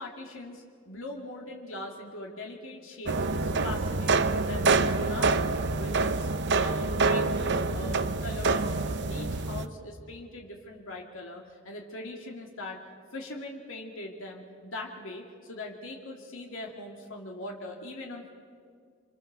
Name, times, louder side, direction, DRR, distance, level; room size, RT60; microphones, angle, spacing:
voice 1, 0.0-6.3 6.6-12.8 13.1-18.3, left 2 dB, 65° left, 0 dB, 2.5 m, -41 dB
sound 1, 3.1-9.7, right 3 dB, 55° right, 0.9 m, -26 dB
29.0 x 26.0 x 6.9 m, 2.1 s
head